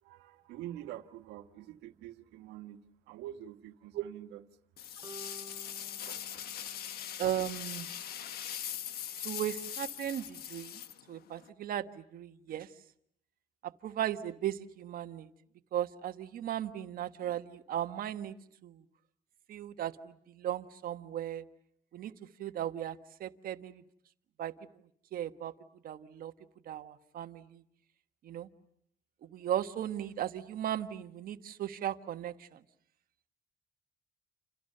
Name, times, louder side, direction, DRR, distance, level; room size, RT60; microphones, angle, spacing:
voice 1, 0.0-2.8 3.1-4.4 6.0-6.4, right 12 dB, 90° right, 8 dB, 1.6 m, -46 dB
sound 1, 4.8-11.5, left 10 dB, 65° left, 1.3 m, -41 dB
sound 2, 5.0-9.1, right 3 dB, 20° right, 1.7 m, -55 dB
voice 2, 7.2-7.9 9.2-10.8 11.1-12.7 13.6-15.3 15.7-18.3 18.6-18.8 19.5-21.4 21.9-22.1 22.4-23.8 24.4-24.5 25.1-25.5 25.8-26.3 26.6-27.6 28.2-28.5 29.2-32.6, right 11 dB, 60° right, 9 dB, 1.4 m, -36 dB
30.0 x 28.0 x 6.8 m, 0.70 s
cardioid pair, 110°, 17 cm